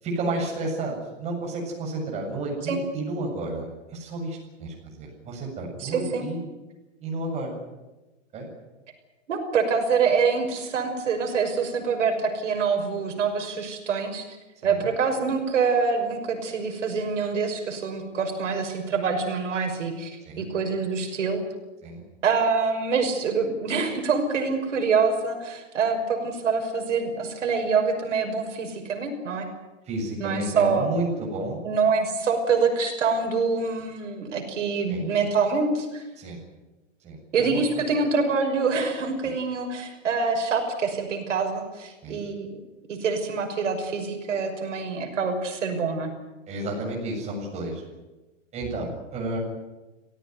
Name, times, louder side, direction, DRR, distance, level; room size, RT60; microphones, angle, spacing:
voice 1, 0.0-6.4 7.0-7.6 8.3-8.5 14.6-14.8 20.3-20.5 21.8-22.0 29.9-31.6 34.9-35.0 36.2-36.4 37.0-37.6 39.2-39.3 42.0-42.2 46.5-47.8 48.5-49.4, right 2 dB, 15° right, -1 dB, 7.5 m, -31 dB
voice 2, 5.8-6.2 9.3-14.3 14.6-21.4 22.2-29.5 30.2-30.9 31.6-36.0 37.3-42.6 42.9-46.1, right 5 dB, 75° right, 4 dB, 6.0 m, -25 dB
26.5 x 16.5 x 9.6 m, 1.1 s
hypercardioid pair, 160°, 37 cm